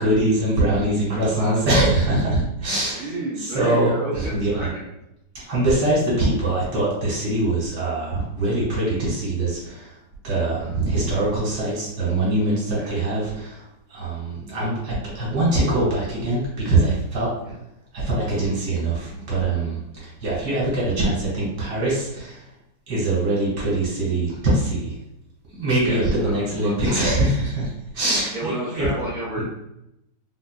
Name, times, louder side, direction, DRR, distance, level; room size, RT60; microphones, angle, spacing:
voice 1, 0.0-3.1 3.4-4.5 5.5-9.9 10.2-13.6 13.9-17.3 17.9-22.4 22.9-24.9 25.5-28.9, right 2 dB, 90° right, -7 dB, 2.3 m, -23 dB
voice 2, 2.9-4.8 10.6-10.8 12.7-13.0 17.4-17.5 25.8-27.0 28.3-29.4, right 1 dB, 50° right, -12 dB, 1.5 m, -31 dB
5.1 x 2.3 x 2.4 m, 0.83 s
omnidirectional pair, 1.8 m